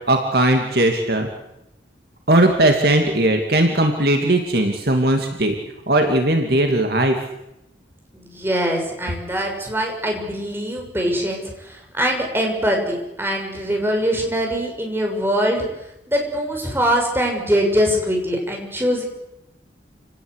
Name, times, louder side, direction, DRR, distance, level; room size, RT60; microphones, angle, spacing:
voice 1, 0.1-1.3 2.3-5.6 5.9-7.2, right 1 dB, 55° right, 3 dB, 2.6 m, -18 dB
voice 2, 8.1-15.6 16.1-19.0, equal, 10° right, 2 dB, 6.6 m, -22 dB
29.0 x 19.0 x 8.2 m, 0.87 s
head